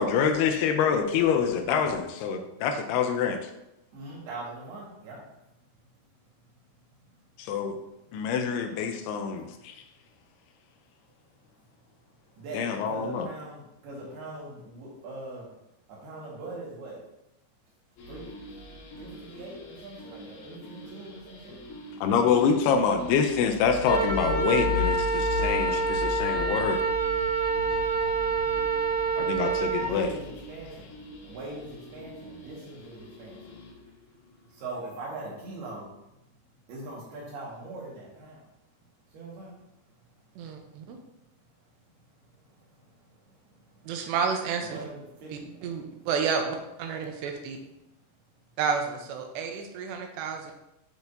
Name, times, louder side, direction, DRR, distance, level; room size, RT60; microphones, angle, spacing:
voice 1, 0.0-3.4 7.4-7.8 8.1-9.7 12.5-13.3 22.0-26.8 29.2-30.1, left 6 dB, 85° left, 6 dB, 2.5 m, -26 dB
voice 2, 3.9-5.5 6.5-6.6 7.1-7.2 8.1-8.2 12.4-15.5 15.9-17.1 18.1-18.3 19.0-21.7 22.0-22.6 27.2-29.4 29.8-33.6 34.5-35.9 36.7-38.5 39.1-39.6 40.0-40.2 40.5-40.6 42.5-43.9 44.6-45.9, right 2 dB, 70° right, -4 dB, 3.7 m, -42 dB
sound 1, 18.0-33.9, left 4 dB, 65° left, 3.8 m, -39 dB
Wind instrument woodwind instrument, 23.8-29.9, right 3 dB, 35° left, 2.9 m, -27 dB
voice 3, 40.4-41.0 43.9-44.9 45.3-47.6 48.6-50.5, right 6 dB, 85° right, 4 dB, 3.1 m, -31 dB
8.7 x 6.2 x 2.8 m, 0.88 s
omnidirectional pair, 4.9 m